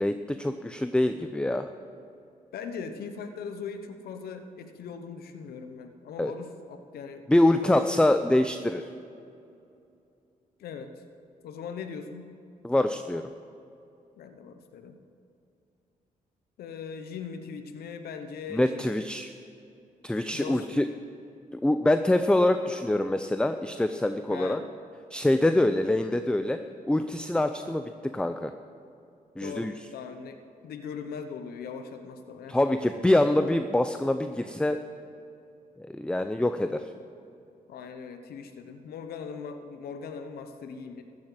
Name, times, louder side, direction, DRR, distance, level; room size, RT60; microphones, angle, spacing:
voice 1, 0.0-1.7 6.2-6.3 7.3-8.8 12.6-13.3 18.5-19.3 20.0-20.9 21.5-24.6 25.1-26.6 26.9-28.5 29.4-29.7 32.5-34.8 35.8-36.9, left 1 dB, 5° left, 9 dB, 0.5 m, -25 dB
voice 2, 2.5-8.5 10.6-11.0 11.4-12.3 14.2-15.0 16.6-18.9 20.3-20.8 24.3-24.7 29.4-32.9 37.7-41.0, left 6 dB, 85° left, 8 dB, 0.9 m, -40 dB
14.5 x 7.5 x 7.7 m, 2.6 s
cardioid pair, 65°, 15 cm